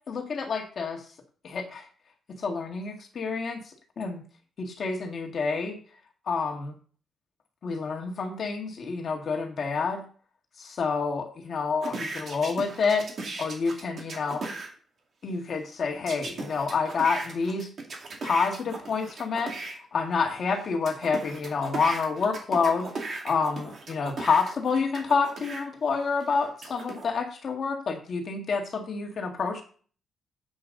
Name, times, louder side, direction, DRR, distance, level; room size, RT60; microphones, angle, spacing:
voice 1, 0.1-1.0 1.4-1.8 2.4-3.6 4.0-4.2 4.6-5.8 6.3-6.7 7.6-10.0 10.6-13.0 13.4-14.4 15.2-17.7 18.2-19.5 19.9-22.9 23.2-29.6, left 5 dB, 40° left, 3 dB, 1.7 m, -28 dB
sound 1, 11.8-14.7 16.1-19.7 20.3-25.6 26.2-27.0, right 3 dB, 40° right, 2.3 m, -37 dB
9.9 x 8.0 x 3.9 m, 0.42 s
wide cardioid pair, 180°, 0 cm